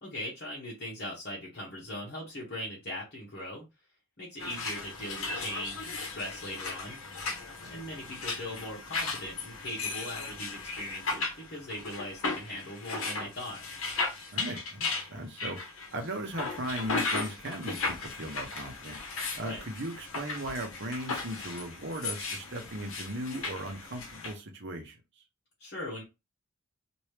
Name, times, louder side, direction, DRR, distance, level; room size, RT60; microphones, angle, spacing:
voice 1, 0.0-3.6 4.2-7.0 7.7-13.6 19.4-19.7 25.6-26.0, left 1 dB, 50° left, 1.1 m, -40 dB
sound 1, 4.4-24.3, left 3 dB, 75° left, 0.9 m, -36 dB
voice 2, 14.3-19.0 19.4-25.0, right 1 dB, 55° right, 0.8 m, -38 dB
3.0 x 2.6 x 3.2 m
head